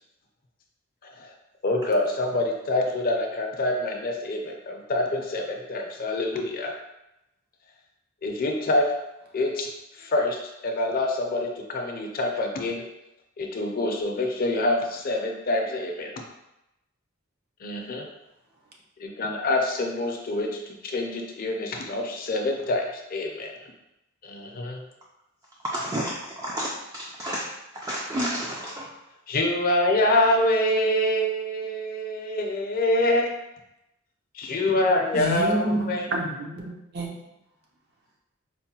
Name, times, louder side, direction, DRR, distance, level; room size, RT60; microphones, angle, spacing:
voice 1, 1.0-1.3 1.6-6.7 8.2-8.9 9.3-10.4 10.6-12.8 13.4-16.1 17.6-18.0 19.0-23.7 24.2-24.8 29.3-33.4 34.3-36.1, left 1 dB, 45° left, 1 dB, 0.5 m, -26 dB
voice 2, 25.6-28.9, equal, 15° right, -4 dB, 0.3 m, -31 dB
voice 3, 35.1-37.2, right 1 dB, 50° right, -1 dB, 0.7 m, -28 dB
4.5 x 2.1 x 2.8 m, 0.90 s
head